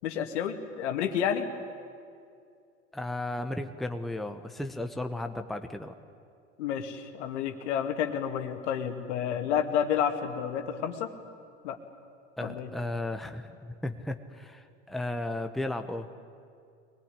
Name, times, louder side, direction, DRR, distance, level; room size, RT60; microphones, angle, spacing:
voice 1, 0.0-1.5 6.6-11.1 11.6-11.8 12.4-12.7, left 8 dB, 65° left, 6 dB, 2.3 m, -30 dB
voice 2, 2.9-5.9 12.4-16.1, left 1 dB, ahead, 6 dB, 1.1 m, -35 dB
23.5 x 19.0 x 10.0 m, 2.3 s
hypercardioid pair, 90°, 38 cm